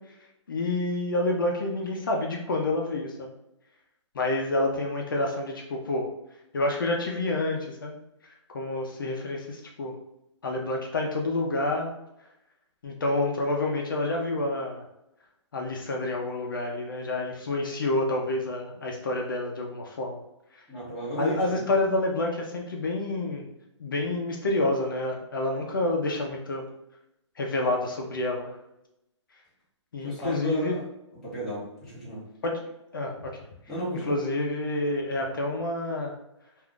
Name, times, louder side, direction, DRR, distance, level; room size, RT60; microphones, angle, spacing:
voice 1, 0.5-3.3 4.1-6.1 6.5-8.0 8.5-10.0 10.4-11.9 12.8-14.8 15.5-20.2 20.5-20.6 21.2-23.5 23.8-26.6 27.4-28.5 29.9-30.8 32.4-32.6 32.9-33.4 34.1-36.1, left 2 dB, 45° left, 0 dB, 0.5 m, -28 dB
voice 2, 20.7-21.6 30.0-30.8 31.2-32.2 33.7-34.1, right 1 dB, ahead, -13 dB, 0.6 m, -34 dB
2.5 x 2.3 x 3.5 m, 0.85 s
hypercardioid pair, 175°, 16 cm